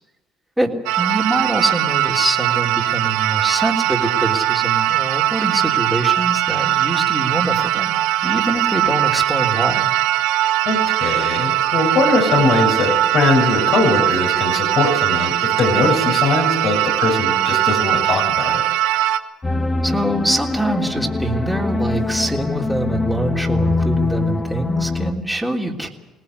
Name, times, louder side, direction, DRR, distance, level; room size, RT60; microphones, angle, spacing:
voice 1, 0.6-9.9 19.8-25.9, right 1 dB, 5° right, -2 dB, 3.6 m, -24 dB
sound 1, 0.9-19.2, right 13 dB, 85° right, 1.1 m, -20 dB
voice 2, 10.7-18.6, left 3 dB, 60° left, 1 dB, 7.8 m, -20 dB
sound 2, 19.4-25.1, left 3 dB, 20° left, 1.8 m, -23 dB
22.0 x 18.5 x 8.3 m, 1.1 s
supercardioid pair, 75°, 0 cm